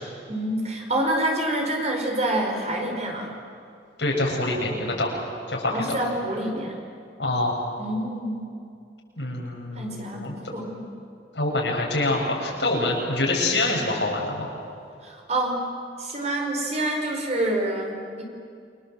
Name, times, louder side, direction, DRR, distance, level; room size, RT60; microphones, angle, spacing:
voice 1, 0.3-3.4 5.7-6.8 7.8-8.5 9.8-10.9 15.0-15.6 16.0-18.2, right 1 dB, 40° right, 1 dB, 5.1 m, -27 dB
voice 2, 4.0-5.1 5.5-6.0 7.2-7.6 9.2-10.3 11.3-14.5, left 2 dB, 90° left, -1 dB, 7.1 m, -25 dB
29.0 x 25.0 x 7.8 m, 2.4 s
head